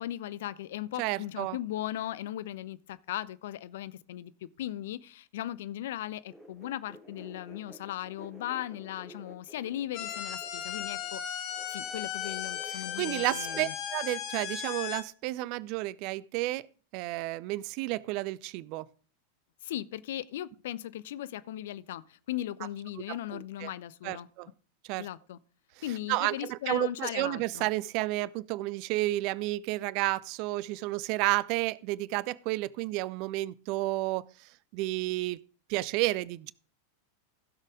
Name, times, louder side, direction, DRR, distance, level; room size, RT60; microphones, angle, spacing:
voice 1, 0.0-13.7 19.6-24.3 25.0-25.4 25.8-27.7, left 13 dB, 55° left, 0.5 m, -38 dB
voice 2, 1.0-1.6 12.7-16.7 16.9-18.9 23.1-23.7 24.0-24.5 24.9-25.1 26.1-34.2 34.7-35.4 35.7-36.5, right 18 dB, 45° right, 0.4 m, -31 dB
sound 1, 6.3-11.1 11.5-13.7, right 1 dB, 5° right, 3.0 m, -52 dB
sound 2, 9.9-15.0, left 9 dB, 40° left, 1.4 m, -36 dB
15.5 x 6.6 x 3.6 m
figure-of-eight pair, 90°, 0 cm